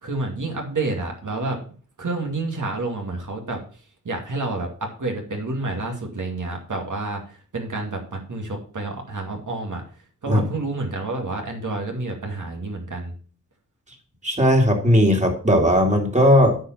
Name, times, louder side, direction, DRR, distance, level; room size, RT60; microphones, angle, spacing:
voice 1, 0.0-1.6 2.0-3.6 4.0-9.8 10.2-13.1, right 2 dB, 65° right, 2 dB, 2.4 m, -29 dB
voice 2, 14.2-16.6, equal, 20° right, 2 dB, 2.5 m, -17 dB
9.3 x 5.0 x 6.0 m, 0.42 s
wide cardioid pair, 75°, 33 cm